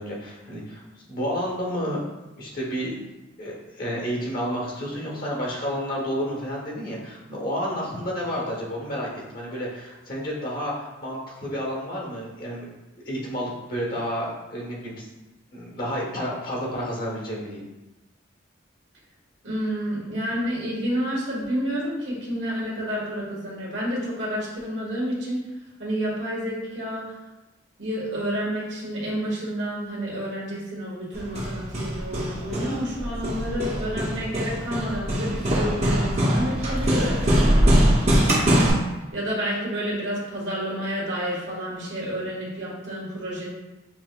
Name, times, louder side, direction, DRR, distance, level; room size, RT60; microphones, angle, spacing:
voice 1, 0.0-2.0 2.4-3.0 3.4-12.7 13.1-15.0 15.5-17.6, equal, 50° left, -3 dB, 1.0 m, -30 dB
voice 2, 19.4-25.4 25.8-27.1 27.8-37.6 38.0-38.4 39.1-43.5, equal, 70° right, -5 dB, 1.4 m, -29 dB
Hammer, 31.1-38.7, equal, 35° right, 0.7 m, -22 dB
5.8 x 2.8 x 2.2 m, 1.0 s
head